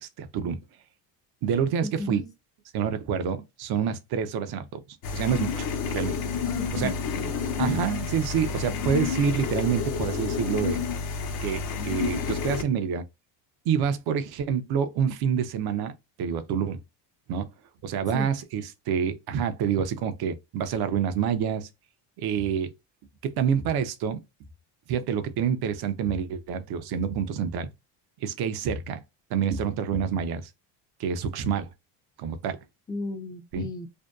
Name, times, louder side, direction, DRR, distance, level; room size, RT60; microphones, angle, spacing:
voice 1, 0.0-0.6 1.4-2.2 2.7-4.8 5.1-6.2 6.7-6.9 7.6-10.8 11.4-13.0 13.7-15.9 16.2-16.8 17.3-17.5 17.8-21.7 22.2-22.7 23.2-24.2 24.9-27.7 28.2-29.0 29.3-30.5 31.0-31.7 32.2-32.6 33.5-33.7, right 7 dB, 55° right, 0.5 m, -27 dB
voice 2, 1.8-2.3 6.5-7.3 18.1-18.3 32.9-33.9, left 2 dB, 10° left, 0.4 m, -35 dB
sound 1, 5.0-12.6, left 6 dB, 50° left, 0.6 m, -29 dB
2.6 x 2.2 x 2.2 m
cardioid pair, 125°, 47 cm